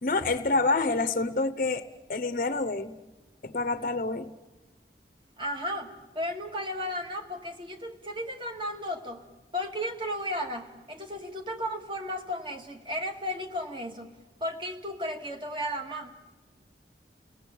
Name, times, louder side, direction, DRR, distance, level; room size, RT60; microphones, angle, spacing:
voice 1, 0.0-1.8 2.1-2.9 3.4-4.3, left 3 dB, 50° left, 8 dB, 0.8 m, -27 dB
voice 2, 5.4-9.2 9.5-14.1 14.4-16.3, equal, 30° right, 4 dB, 2.2 m, -34 dB
29.5 x 18.5 x 8.5 m, 1.2 s
head